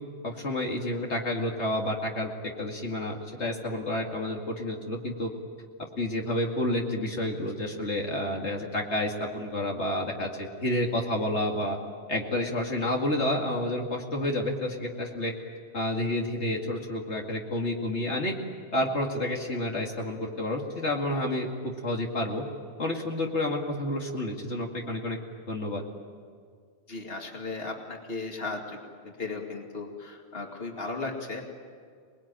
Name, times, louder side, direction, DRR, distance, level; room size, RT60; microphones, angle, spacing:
voice 1, 0.2-2.3 2.6-5.3 6.0-11.8 12.1-15.3 15.7-18.4 18.7-22.4 22.8-25.2 25.5-25.8, left 1 dB, 80° left, 0 dB, 2.7 m, -30 dB
voice 2, 26.9-28.8 29.0-31.4, left 3 dB, 60° left, 1 dB, 2.7 m, -36 dB
27.5 x 20.5 x 9.0 m, 2.1 s
omnidirectional pair, 1.1 m